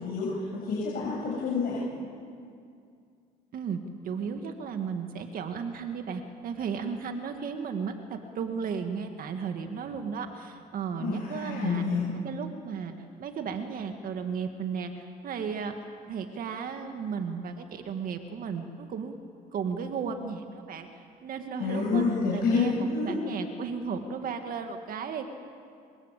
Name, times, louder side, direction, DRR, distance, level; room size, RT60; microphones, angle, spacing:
voice 1, 0.0-1.8 11.0-12.1 21.6-23.1, left 4 dB, 65° left, -5 dB, 7.4 m, -28 dB
voice 2, 4.0-11.8 12.2-12.9 13.2-15.7 16.1-19.2 19.5-22.0 22.3-25.3, right 6 dB, 55° right, 6 dB, 2.1 m, -34 dB
26.0 x 25.5 x 8.4 m, 2.3 s
cardioid pair, 110°, 17 cm